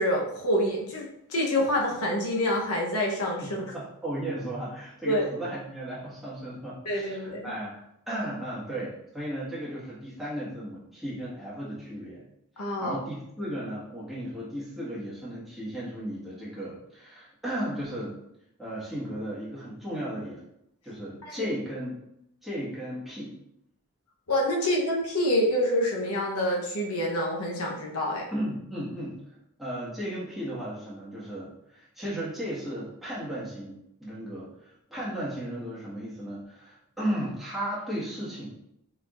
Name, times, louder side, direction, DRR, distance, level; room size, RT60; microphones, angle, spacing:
voice 1, 0.0-3.7 5.0-5.3 6.8-7.5 12.6-13.0 21.2-21.5 24.3-28.3, left 1 dB, 85° left, -2 dB, 1.0 m, -27 dB
voice 2, 3.4-12.2 12.8-18.2 18.6-20.4 20.8-22.0 22.4-23.4 28.3-29.2 29.6-33.7 34.0-38.5, equal, ahead, -9 dB, 1.6 m, -35 dB
4.7 x 4.5 x 2.5 m, 0.78 s
head